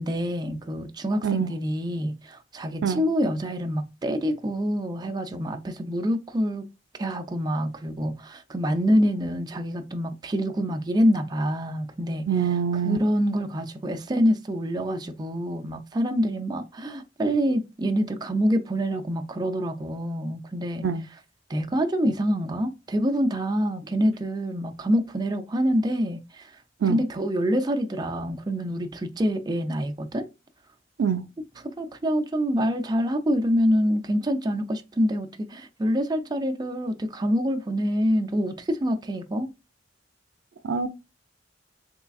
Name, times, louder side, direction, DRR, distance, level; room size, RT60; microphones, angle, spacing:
voice 1, 0.0-6.7 7.0-12.5 12.8-20.9 21.5-26.5 26.9-30.3 31.6-39.5, equal, 20° right, 0.4 m, -26 dB
voice 2, 12.3-13.0 20.8-21.0 26.8-27.0 31.0-31.2 40.6-40.9, right 7 dB, 85° right, 0.4 m, -24 dB
3.7 x 3.2 x 2.3 m
head